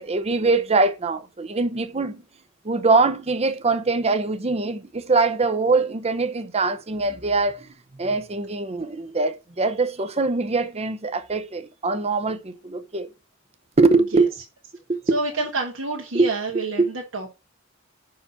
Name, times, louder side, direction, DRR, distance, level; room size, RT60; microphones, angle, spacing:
voice 1, 0.0-2.2 2.6-13.1 13.8-14.3 14.9-15.2 16.1-16.3 16.8-16.9, right 3 dB, 30° right, 0.7 m, -22 dB
voice 2, 15.1-17.3, right 3 dB, 75° right, 1.4 m, -28 dB
5.8 x 4.7 x 5.5 m
head